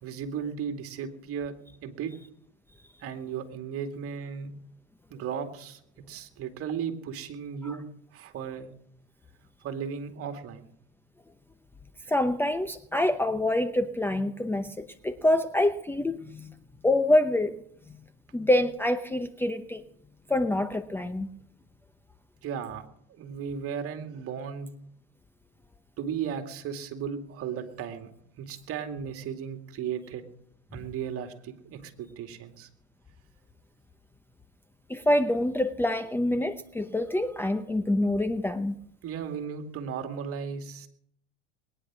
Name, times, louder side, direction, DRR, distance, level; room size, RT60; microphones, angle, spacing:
voice 1, 0.0-1.6 1.8-2.1 3.0-4.5 5.1-5.8 6.1-7.9 8.1-8.7 9.6-10.7 22.4-22.9 23.2-24.7 26.0-28.1 28.4-30.3 30.7-32.7 39.0-40.9, right 7 dB, 45° right, 6 dB, 2.4 m, -35 dB
voice 2, 12.1-16.5 16.8-17.6 18.3-19.8 20.3-21.3 34.9-38.7, left 1 dB, 5° left, 9 dB, 0.8 m, -26 dB
21.0 x 10.0 x 6.2 m, 0.70 s
supercardioid pair, 100°, 33 cm